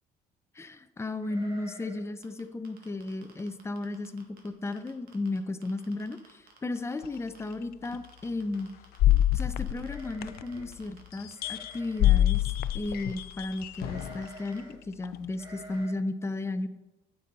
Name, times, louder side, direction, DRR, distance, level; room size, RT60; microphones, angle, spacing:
voice 1, 0.6-8.7 9.3-12.4 12.7-16.7, left 2 dB, 15° left, 10 dB, 0.6 m, -34 dB
sound 1, 1.2-2.2 2.4-2.5 3.0-3.3 3.8-3.9 4.2-4.7 5.1-5.2 6.3-6.4 6.7-7.1 9.8-10.8 11.3-12.3 13.8-14.8 15.3-15.9, equal, 25° right, 2.1 m, -50 dB
sound 2, 2.2-5.4 5.6-7.5 7.8-14.6, right 6 dB, 65° right, 1.8 m, -56 dB
sound 3, 7.0-7.1 7.8-8.0 9.0-10.7 11.1-14.3 15.0-15.2, left 13 dB, 65° left, 0.4 m, -26 dB
9.0 x 7.0 x 4.1 m, 1.0 s
cardioid pair, 110°, 17 cm